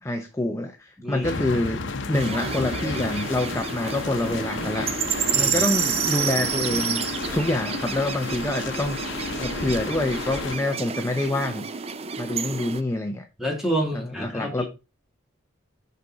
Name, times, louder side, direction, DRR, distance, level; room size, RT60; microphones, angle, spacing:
voice 1, 0.0-4.9 5.3-11.6 12.2-13.2 13.9-14.6, left 1 dB, 15° left, 0.6 m, -27 dB
voice 2, 1.0-1.6 5.2-5.7 13.4-14.7, right 1 dB, ahead, 2.1 m, -29 dB
sound 1, 1.2-10.6, left 4 dB, 65° left, 0.9 m, -32 dB
sound 2, 2.1-12.8, right 7 dB, 30° right, 0.4 m, -29 dB
6.7 x 5.4 x 4.6 m
head